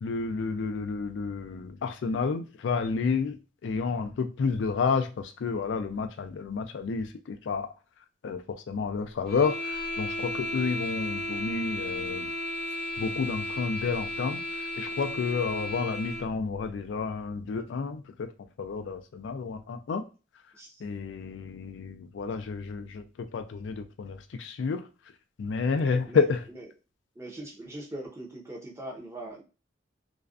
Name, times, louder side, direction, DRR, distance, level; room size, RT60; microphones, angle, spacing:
voice 1, 0.0-3.4 3.6-7.7 8.2-12.3 13.0-18.3 18.6-20.0 20.8-24.9 25.4-26.4, left 5 dB, 70° left, 0.3 m, -30 dB
sound 1, 9.3-16.3, left 1 dB, 55° left, 0.9 m, -34 dB
voice 2, 25.8-26.7 27.2-29.4, right 1 dB, 15° right, 0.5 m, -41 dB
2.4 x 2.1 x 2.4 m
head